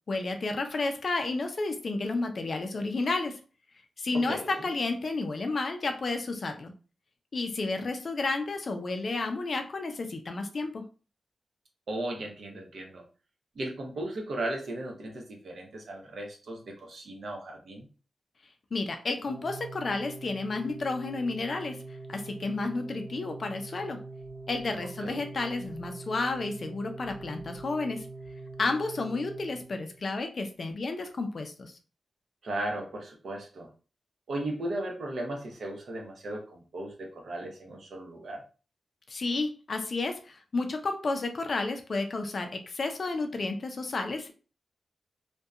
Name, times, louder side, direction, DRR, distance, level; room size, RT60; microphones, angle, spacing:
voice 1, 0.1-3.4 4.0-6.7 7.3-10.8 18.7-21.8 22.1-24.0 24.5-28.1 28.6-31.8 39.1-44.3, left 3 dB, 45° left, 6 dB, 0.3 m, -31 dB
voice 2, 4.1-4.5 11.9-13.0 13.6-17.9 25.0-25.2 32.4-33.7 34.3-38.4, right 1 dB, 65° right, 1 dB, 0.7 m, -36 dB
Organ, 19.2-30.1, right 3 dB, 20° right, 1.4 m, -43 dB
2.7 x 2.2 x 2.3 m, 0.35 s
wide cardioid pair, 145°, 0 cm